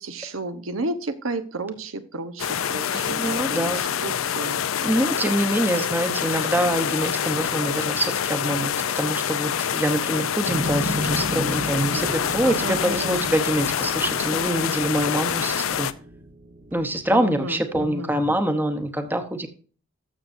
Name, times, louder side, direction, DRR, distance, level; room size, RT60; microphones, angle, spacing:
voice 1, 0.0-4.6 12.4-13.2 17.1-18.1, right 2 dB, 85° right, 10 dB, 1.0 m, -32 dB
sound 1, 2.4-15.9, left 8 dB, 85° left, 0.5 m, -26 dB
voice 2, 2.9-3.8 4.8-15.9 16.7-19.5, right 1 dB, 10° right, 8 dB, 0.9 m, -25 dB
sound 2, 10.4-17.0, right 1 dB, 45° right, 1.0 m, -33 dB
13.5 x 6.7 x 2.6 m, 0.40 s
head